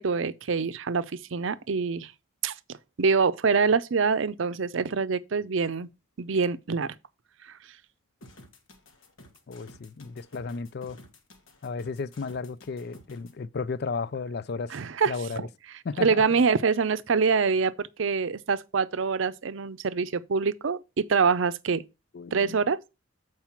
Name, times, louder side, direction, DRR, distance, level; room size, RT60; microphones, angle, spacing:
voice 1, 0.0-2.1 2.4-2.5 3.0-5.9 6.2-6.9 14.7-15.1 16.0-21.8 22.3-22.8, right 5 dB, 70° right, 0.6 m, -25 dB
sound 1, 8.2-13.3, left 1 dB, 80° left, 1.5 m, -52 dB
voice 2, 9.5-11.0 11.6-14.8 15.1-15.5 15.8-16.2 22.1-22.6, left 4 dB, 50° left, 0.4 m, -34 dB
7.4 x 4.7 x 5.8 m
head